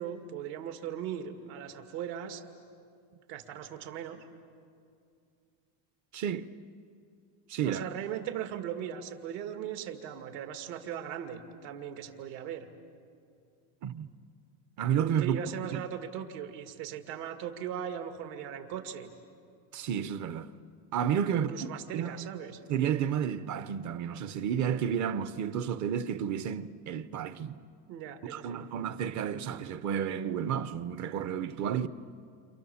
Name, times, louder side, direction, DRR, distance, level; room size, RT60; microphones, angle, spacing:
voice 1, 0.0-2.4 3.3-4.2 7.6-12.7 15.2-19.1 21.3-22.6 27.9-28.6, right 9 dB, 75° right, 2.4 m, -38 dB
voice 2, 6.1-6.4 7.5-7.8 13.8-14.1 14.8-15.4 19.7-20.5 20.9-21.5 21.9-22.3 22.7-27.6 28.3-31.9, right 8 dB, 40° right, 0.8 m, -31 dB
30.0 x 28.0 x 7.1 m
cardioid pair, 170°, 45 cm